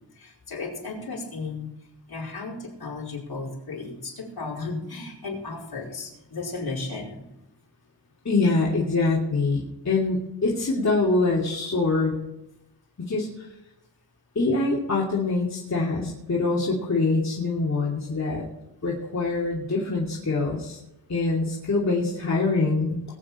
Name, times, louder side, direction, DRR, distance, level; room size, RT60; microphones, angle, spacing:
voice 1, 0.1-1.7 2.1-7.2, left 3 dB, 60° left, -3 dB, 4.9 m, -34 dB
voice 2, 8.2-12.2 13.0-13.5 14.3-18.5 18.8-20.8 21.1-23.0, left 3 dB, 40° left, -5 dB, 2.8 m, -24 dB
20.5 x 9.0 x 4.4 m, 0.88 s
wide cardioid pair, 85°, 43 cm